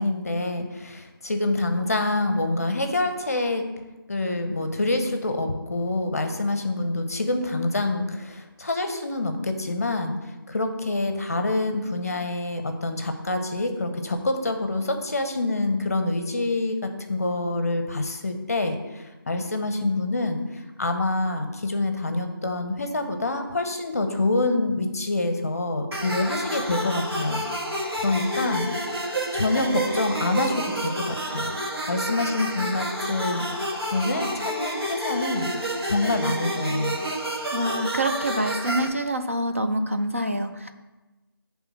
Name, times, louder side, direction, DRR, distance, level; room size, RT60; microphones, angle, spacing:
voice 1, 0.0-3.7 4.1-27.4 28.0-28.7 29.3-31.6 31.9-33.5 33.9-35.5 35.8-37.0, left 2 dB, 40° left, 7 dB, 0.7 m, -26 dB
sound 1, 25.9-38.9, right 1 dB, 85° right, 1.5 m, -29 dB
voice 2, 37.5-40.7, right 1 dB, 35° right, 6 dB, 0.3 m, -26 dB
8.2 x 3.6 x 6.1 m, 1.1 s
figure-of-eight pair, 175°, 13 cm